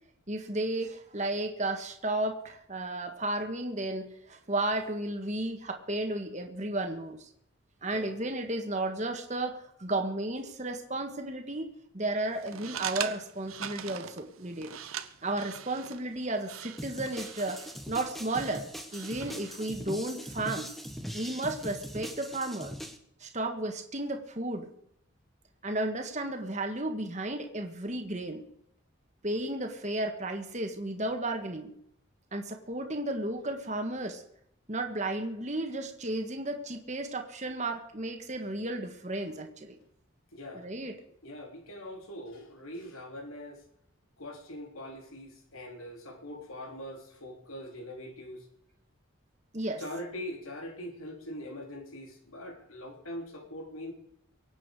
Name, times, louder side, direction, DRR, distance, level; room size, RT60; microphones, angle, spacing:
voice 1, 0.3-7.2 7.8-11.7 11.9-14.7 15.2-17.6 17.9-18.6 18.9-20.7 21.1-22.7 23.2-24.7 25.6-28.4 29.2-31.7 32.3-34.2 34.7-39.8 40.5-40.9 49.5-49.8, right 2 dB, 35° right, 4 dB, 1.7 m, -33 dB
sound 1, 12.3-19.7, right 9 dB, 85° right, 0.9 m, -42 dB
sound 2, 16.8-23.0, equal, ahead, 1.2 m, -41 dB
voice 2, 40.3-40.8 41.2-43.6 44.2-48.4 49.8-53.9, left 1 dB, 85° left, 3 dB, 3.3 m, -42 dB
24.0 x 8.8 x 4.9 m, 0.72 s
head